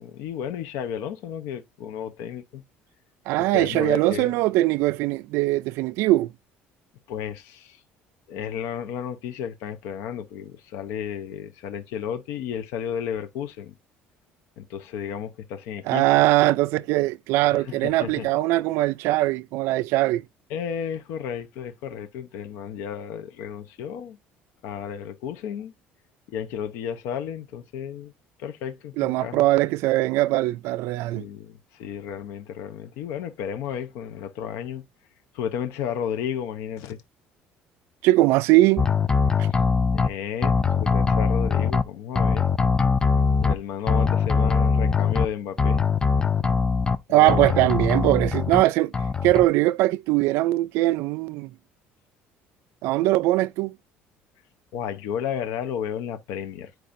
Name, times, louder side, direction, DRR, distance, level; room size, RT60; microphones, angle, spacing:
voice 1, 0.0-2.6 3.5-4.4 7.1-7.8 8.3-13.7 14.6-16.0 17.5-18.3 20.5-24.2 24.6-25.7 26.3-28.1 28.4-29.5 31.1-34.8 35.3-37.0 39.5-39.6 39.9-42.5 43.4-45.8 47.1-47.6 54.7-56.7, left 8 dB, 80° left, 0.7 m, -33 dB
voice 2, 3.3-6.3 15.9-20.2 29.0-31.3 38.0-38.9 47.1-48.9 49.2-51.5 52.8-53.7, right 17 dB, 75° right, 0.4 m, -21 dB
sound 1, 38.8-40.1 40.4-41.8 42.2-43.5 43.9-45.3 45.6-47.0 47.3-48.6 48.9-49.4, left 5 dB, 15° left, 0.5 m, -21 dB
10.0 x 4.7 x 2.6 m
cardioid pair, 140°, 4 cm